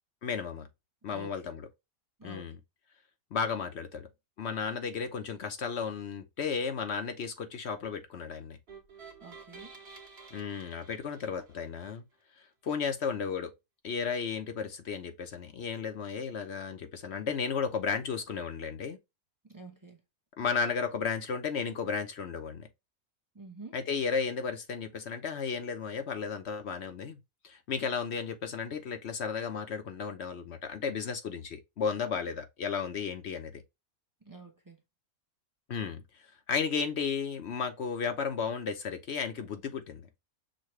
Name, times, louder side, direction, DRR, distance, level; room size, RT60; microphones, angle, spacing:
voice 1, 0.2-0.7 1.0-1.7 2.2-2.6 3.3-4.1 4.4-8.6 10.3-12.0 12.6-13.5 13.8-19.0 20.4-22.7 23.7-27.2 27.4-33.6 35.7-36.0 36.5-40.1, left 6 dB, 55° left, 0.8 m, -34 dB
sound 1, 8.7-11.9, right 5 dB, 45° right, 1.3 m, -51 dB
voice 2, 9.2-9.7 19.5-20.0 23.3-23.8 34.2-34.8, right 2 dB, 15° right, 0.7 m, -48 dB
6.4 x 2.2 x 3.0 m
omnidirectional pair, 1.6 m